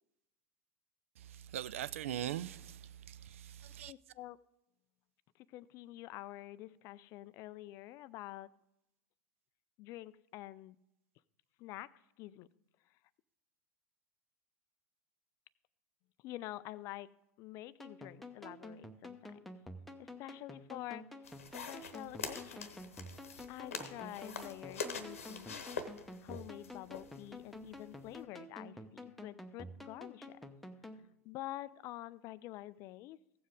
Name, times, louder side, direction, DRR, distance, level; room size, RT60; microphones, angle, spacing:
voice 1, 1.2-3.9, right 11 dB, 65° right, 0.3 m, -41 dB
voice 2, 3.9-4.4 5.5-8.5 9.8-10.8 11.6-11.9 12.2-12.5 16.2-17.1 17.4-19.4 20.0-21.0 21.7-22.7 23.5-25.6 26.2-30.4 31.3-33.2, left 15 dB, 40° left, 0.3 m, -47 dB
sound 1, 17.8-31.0, left 1 dB, ahead, 0.7 m, -50 dB
sound 2, 21.2-28.2, left 5 dB, 70° left, 0.9 m, -45 dB
15.5 x 7.2 x 3.7 m
figure-of-eight pair, 80°, 8 cm